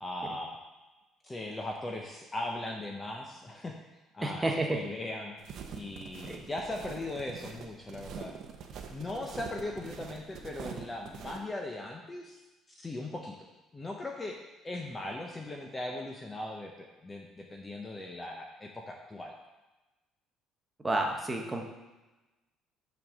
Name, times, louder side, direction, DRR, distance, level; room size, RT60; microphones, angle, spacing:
voice 1, 0.0-0.6 1.2-3.8 4.1-5.4 5.7-8.3 8.9-12.4 12.7-13.3 13.7-14.4 14.6-19.3, left 2 dB, 15° left, 1 dB, 0.7 m, -39 dB
voice 2, 4.2-4.8 6.3-6.4 20.8-21.6, right 2 dB, 10° right, 1 dB, 0.9 m, -30 dB
sound 1, 5.4-11.4, right 6 dB, 50° right, 0.8 m, -44 dB
6.2 x 5.2 x 6.2 m, 1.1 s
cardioid pair, 155°, 0 cm